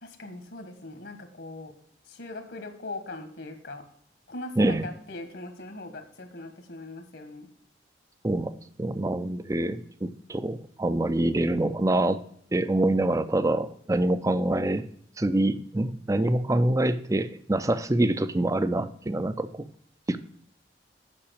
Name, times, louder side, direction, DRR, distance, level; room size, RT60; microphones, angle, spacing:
voice 1, 0.0-1.7 2.1-3.8 4.3-7.5, left 2 dB, 65° left, 7 dB, 1.5 m, -40 dB
voice 2, 8.2-12.2 12.5-14.9 15.2-19.6 20.1-20.2, right 1 dB, 20° right, 13 dB, 0.5 m, -25 dB
8.7 x 6.1 x 6.4 m, 0.63 s
head